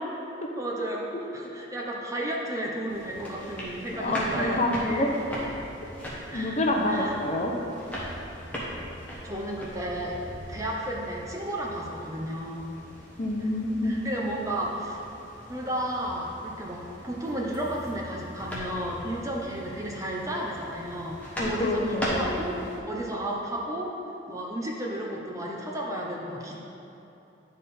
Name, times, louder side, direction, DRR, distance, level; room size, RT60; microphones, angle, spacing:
voice 1, 0.5-4.6 6.3-6.6 6.9-7.1 9.2-10.2 10.5-12.7 13.4-13.5 13.8-15.0 15.5-23.9 24.3-26.6, right 1 dB, 15° right, -2 dB, 0.6 m, -33 dB
sound 1, 2.9-22.8, equal, 5° left, 1.1 m, -39 dB
voice 2, 4.0-5.1 6.3-7.5 13.2-14.0 21.4-22.3, left 1 dB, 35° left, 1 dB, 0.7 m, -27 dB
10.5 x 3.6 x 4.2 m, 3.0 s
head